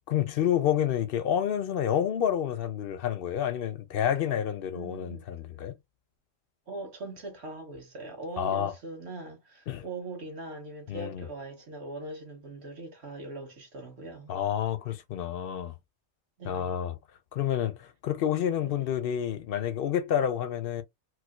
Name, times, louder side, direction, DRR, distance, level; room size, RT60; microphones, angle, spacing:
voice 1, 0.1-5.7 8.4-8.7 9.7-9.8 10.9-11.2 14.3-15.7 16.4-17.0 17.3-20.8, left 9 dB, 60° left, 0.6 m, -29 dB
voice 2, 4.7-5.2 6.7-14.3 16.4-16.7 18.6-18.9, right 2 dB, 55° right, 1.4 m, -41 dB
4.6 x 2.0 x 2.2 m
omnidirectional pair, 1.3 m